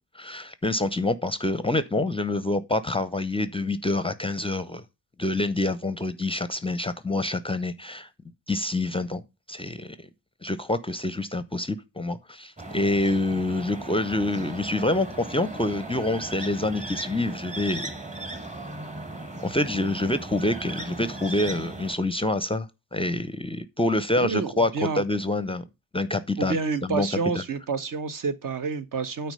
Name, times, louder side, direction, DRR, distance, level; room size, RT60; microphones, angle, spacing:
voice 1, 0.1-4.8 5.2-8.1 8.5-9.2 9.5-10.1 10.4-17.9 19.4-25.6 25.9-26.6 26.8-27.1 27.3-27.4, left 2 dB, 10° left, 0.7 m, -27 dB
sound 1, 12.6-22.0, right 2 dB, 15° right, 1.7 m, -37 dB
voice 2, 24.2-25.0 26.4-29.3, right 5 dB, 40° right, 1.1 m, -29 dB
9.0 x 4.5 x 5.5 m
hypercardioid pair, 45°, 48 cm